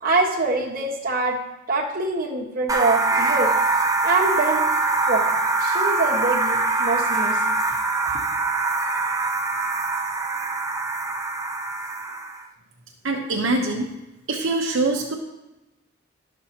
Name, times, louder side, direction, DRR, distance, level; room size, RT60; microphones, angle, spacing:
voice 1, 0.0-1.4 1.7-3.5 4.0-4.7 5.1-5.3 5.6-7.6, right 3 dB, 45° right, -2 dB, 1.4 m, -24 dB
sound 1, 2.7-12.4, right 3 dB, 15° right, 0.6 m, -23 dB
voice 2, 13.0-13.9 14.3-15.1, right 2 dB, 70° right, 0 dB, 1.0 m, -23 dB
12.0 x 6.5 x 2.9 m, 1.0 s
head